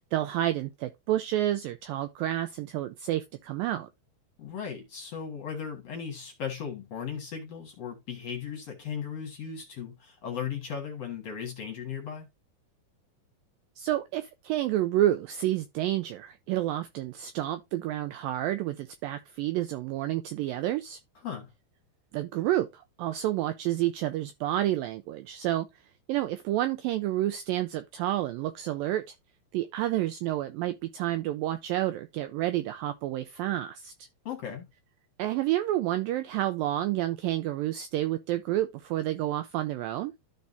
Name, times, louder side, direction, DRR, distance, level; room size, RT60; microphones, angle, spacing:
voice 1, 0.0-3.9 13.8-21.0 22.1-25.7 26.1-29.1 29.5-33.9 35.2-40.1, right 14 dB, 85° right, 2.0 m, -29 dB
voice 2, 4.4-12.3 21.2-21.5 34.3-34.7, left 7 dB, 55° left, 2.0 m, -37 dB
13.0 x 4.7 x 2.6 m
omnidirectional pair, 4.6 m